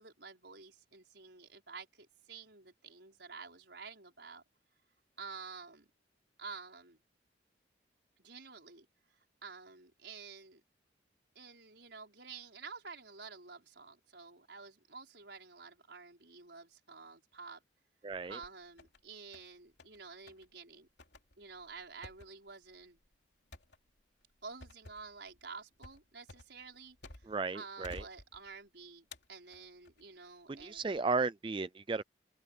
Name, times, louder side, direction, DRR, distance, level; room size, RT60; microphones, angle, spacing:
voice 1, 0.0-4.4 5.2-5.9 6.4-7.0 8.2-8.9 9.4-10.6 11.3-17.6 18.3-20.9 21.4-23.0 24.4-30.8, right 5 dB, 65° right, 5.0 m, -50 dB
voice 2, 18.0-18.4 27.3-28.0 30.5-32.0, right 4 dB, 25° right, 0.4 m, -34 dB
sound 1, 18.1-19.0 19.3-20.0 20.3-20.5 21.0-27.5 27.8-28.7 29.1-30.0 30.6-31.0, left 2 dB, 65° left, 3.2 m, -54 dB
open air
head